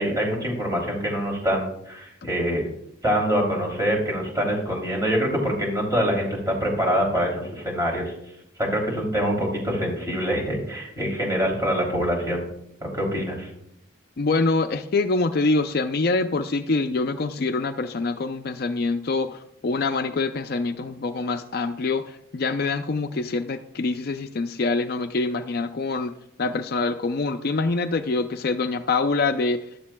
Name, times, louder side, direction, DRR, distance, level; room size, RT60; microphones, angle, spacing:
voice 1, 0.0-2.6 3.0-8.1 8.6-12.4 12.8-13.5, equal, 15° right, -2 dB, 2.9 m, -25 dB
voice 2, 14.2-26.1 26.4-29.7, left 3 dB, 50° left, 8 dB, 0.4 m, -25 dB
14.5 x 11.5 x 2.2 m, 0.78 s
head